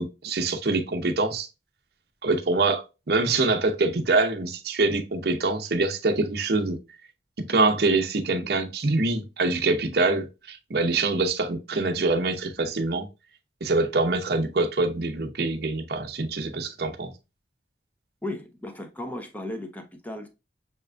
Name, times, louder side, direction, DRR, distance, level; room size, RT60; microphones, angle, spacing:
voice 1, 0.0-1.5 2.2-6.8 7.4-13.1 13.6-17.1, right 3 dB, 60° right, 0.7 m, -25 dB
voice 2, 18.2-20.3, left 1 dB, 10° left, 0.6 m, -35 dB
6.6 x 2.5 x 2.2 m
head